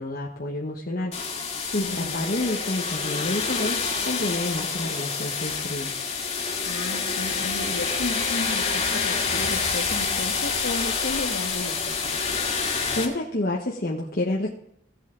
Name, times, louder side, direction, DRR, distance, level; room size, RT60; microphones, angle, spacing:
voice 1, 0.0-5.9 12.9-14.5, left 1 dB, 50° left, -1 dB, 1.1 m, -29 dB
sound 1, 1.1-13.1, left 5 dB, 30° left, 2.2 m, -27 dB
voice 2, 1.7-2.2 6.6-12.2, left 2 dB, 85° left, 5 dB, 1.5 m, -33 dB
16.0 x 7.6 x 3.8 m, 0.77 s
head